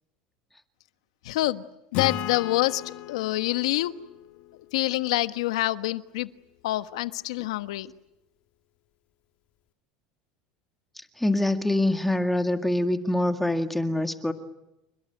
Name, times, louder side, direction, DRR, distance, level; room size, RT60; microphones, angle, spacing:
voice 1, 1.2-1.7 1.9-3.9 4.7-6.3 6.6-7.9, left 17 dB, 85° left, 11 dB, 1.4 m, -26 dB
Acoustic guitar / Strum, 1.9-5.4, left 13 dB, 55° left, 1.9 m, -36 dB
voice 2, 11.0-14.3, left 1 dB, 5° left, 7 dB, 2.0 m, -25 dB
29.5 x 21.0 x 9.2 m, 0.90 s
supercardioid pair, 120°, 3 cm